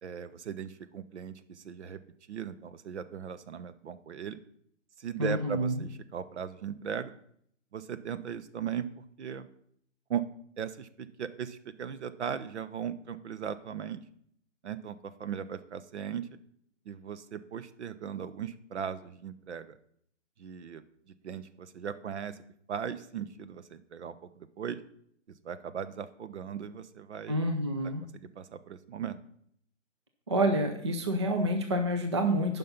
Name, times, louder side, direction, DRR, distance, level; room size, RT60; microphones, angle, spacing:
voice 1, 0.0-2.0 2.3-4.4 5.0-7.1 7.7-9.5 10.1-10.2 10.6-14.0 14.6-16.3 16.9-19.8 20.4-20.8 21.2-22.4 22.7-24.8 25.4-27.4 28.1-29.2, right 8 dB, 60° right, 13 dB, 0.8 m, -38 dB
voice 2, 5.2-5.7 27.3-28.0 30.3-32.6, right 1 dB, 25° right, 5 dB, 0.4 m, -28 dB
9.3 x 5.5 x 5.8 m, 0.67 s
hypercardioid pair, 160°, 38 cm